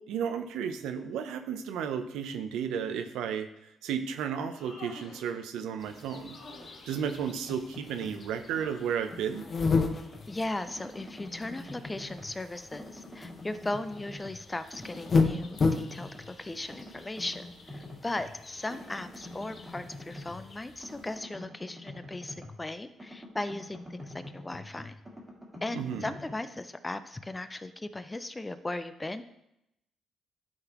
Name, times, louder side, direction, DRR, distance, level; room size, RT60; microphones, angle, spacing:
voice 1, 0.1-6.4 6.9-9.4 25.7-26.2, right 7 dB, 90° right, 8 dB, 0.6 m, -33 dB
Human voice, 4.4-5.4 6.2-7.0 8.4-9.1, left 2 dB, 75° left, 1.9 m, -49 dB
sound 1, 5.8-21.2, left 4 dB, 40° left, 0.9 m, -35 dB
sound 2, 7.2-8.2 8.6-10.3 10.7-12.4 12.7-14.5 14.7-16.3 16.7-18.3 18.7-22.7 23.0-26.3, left 1 dB, 15° right, 1.8 m, -46 dB
voice 2, 9.9-24.9 25.6-29.3, left 2 dB, 15° left, 11 dB, 0.5 m, -37 dB
11.5 x 4.0 x 2.9 m, 0.83 s
cardioid pair, 90°, 0 cm